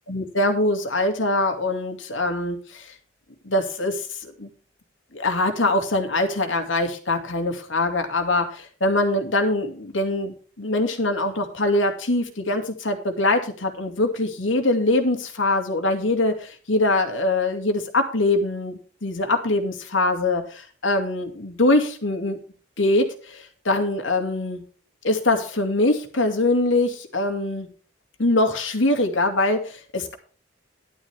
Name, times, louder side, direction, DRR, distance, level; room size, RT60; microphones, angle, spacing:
voice 1, 0.1-2.9 3.4-4.5 5.1-22.4 22.8-24.6 25.0-27.7 28.2-30.1, left 2 dB, 85° left, 5 dB, 2.6 m, -23 dB
12.0 x 11.5 x 3.5 m, 0.40 s
head